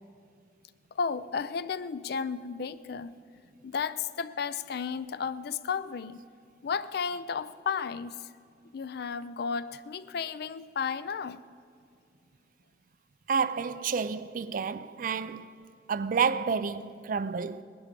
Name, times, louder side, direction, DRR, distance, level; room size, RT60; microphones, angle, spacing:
voice 1, 1.0-3.1 3.6-6.2 6.6-8.3 8.7-11.4, left 6 dB, 60° left, 0.4 m, -33 dB
voice 2, 13.3-15.6 15.9-17.6, right 6 dB, 50° right, 0.4 m, -30 dB
19.0 x 11.0 x 5.2 m
head